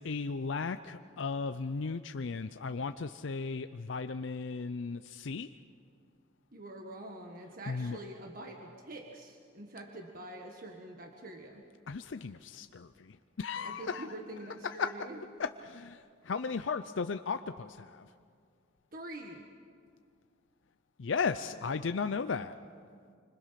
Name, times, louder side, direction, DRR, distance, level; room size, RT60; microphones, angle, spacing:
voice 1, 0.0-5.5 7.7-8.0 11.9-14.1 14.6-14.9 15.4-18.1 21.0-22.5, left 5 dB, 75° left, 10 dB, 0.5 m, -35 dB
voice 2, 6.5-11.6 13.6-15.2 18.9-19.5, right 1 dB, 45° right, 2 dB, 1.7 m, -45 dB
26.5 x 25.5 x 5.8 m, 2.2 s
head